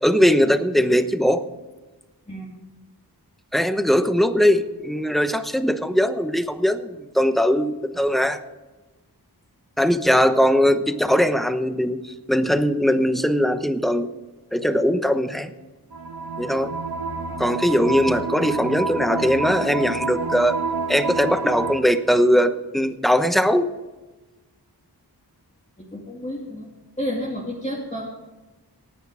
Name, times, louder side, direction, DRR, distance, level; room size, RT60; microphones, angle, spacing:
voice 1, 0.0-1.4 3.5-8.4 9.8-14.1 14.5-15.5 16.4-16.7 17.4-20.6 20.9-23.7, equal, ahead, 10 dB, 1.0 m, -20 dB
sound 1, 15.9-21.8, right 3 dB, 65° right, 1.6 m, -28 dB
voice 2, 25.8-26.7 27.0-28.1, equal, 15° left, -4 dB, 2.5 m, -30 dB
17.5 x 9.4 x 4.9 m, 1.2 s
wide cardioid pair, 45°, 40 cm